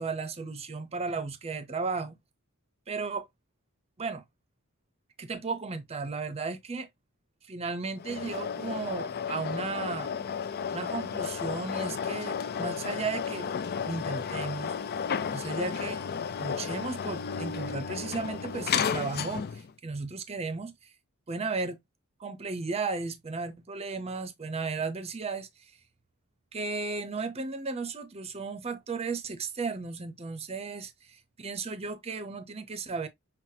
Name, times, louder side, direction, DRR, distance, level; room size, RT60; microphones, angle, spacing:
voice 1, 0.0-2.2 2.9-3.2 4.0-4.2 5.2-6.9 7.5-10.1 10.7-13.5 13.8-14.7 15.3-16.0 16.4-20.7 21.3-21.8 22.2-25.5 26.5-33.1, right 4 dB, 30° right, 0.6 m, -35 dB
sound 1, 8.0-19.7, left 6 dB, 45° left, 0.4 m, -33 dB
5.7 x 2.0 x 2.7 m
head